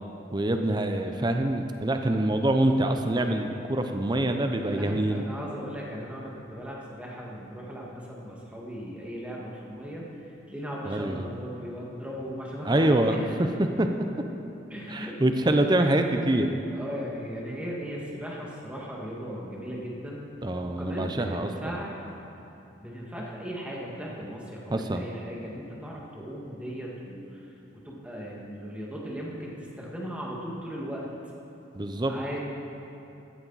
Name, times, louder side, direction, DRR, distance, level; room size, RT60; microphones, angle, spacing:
voice 1, 0.3-5.3 10.8-11.3 12.6-13.2 13.8-13.9 14.9-16.5 20.4-21.8 24.7-25.0 31.7-32.2, right 1 dB, 20° right, 5 dB, 0.6 m, -25 dB
voice 2, 4.5-10.1 10.5-13.6 14.7-15.2 15.5-15.7 16.7-20.2 20.8-21.9 22.8-27.4 27.8-31.1 32.1-32.4, equal, 5° right, -4 dB, 1.9 m, -37 dB
15.0 x 13.0 x 4.1 m, 2.8 s
head